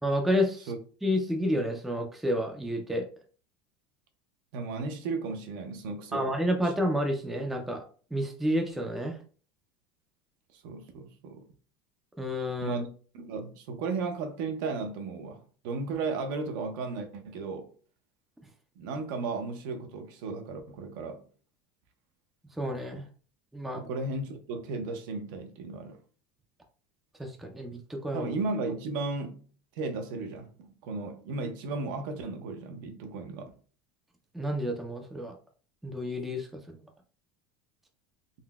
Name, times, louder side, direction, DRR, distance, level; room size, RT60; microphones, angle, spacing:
voice 1, 0.0-0.7 1.0-3.1 6.1-9.2 12.2-12.8 22.6-23.0 23.5-23.8 27.2-28.3 34.3-35.3 35.8-36.8, equal, ahead, 0.3 m, -30 dB
voice 2, 4.5-6.3 6.6-6.7 10.5-11.5 12.6-12.9 13.1-17.7 18.8-21.2 23.7-26.0 28.1-29.4 29.8-33.6, right 3 dB, 65° right, 0.6 m, -35 dB
3.8 x 2.0 x 2.2 m
supercardioid pair, 160°, 12 cm